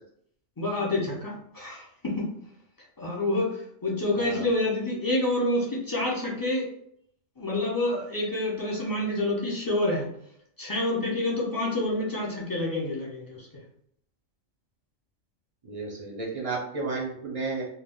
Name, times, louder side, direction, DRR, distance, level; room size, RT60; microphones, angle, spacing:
voice 1, 0.6-2.3 3.0-6.7 7.4-10.1 10.6-13.5, left 2 dB, 35° left, -4 dB, 0.3 m, -28 dB
voice 2, 15.6-17.7, right 3 dB, 50° right, -2 dB, 0.4 m, -32 dB
2.2 x 2.2 x 3.5 m, 0.69 s
omnidirectional pair, 1.3 m